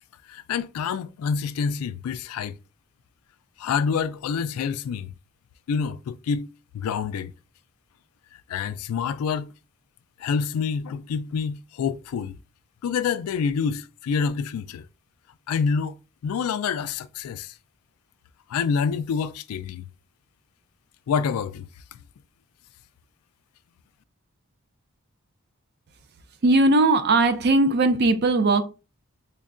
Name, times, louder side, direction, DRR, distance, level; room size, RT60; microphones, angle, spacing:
voice 1, 0.3-2.6 3.6-5.1 5.7-6.5 6.7-7.3 8.5-9.5 10.2-12.4 12.8-14.9 15.5-15.9 16.2-17.5 18.5-19.9 21.1-22.0, left 6 dB, 85° left, 0.3 m, -27 dB
voice 2, 26.4-28.6, right 2 dB, 50° right, 0.4 m, -19 dB
5.1 x 2.2 x 2.4 m
head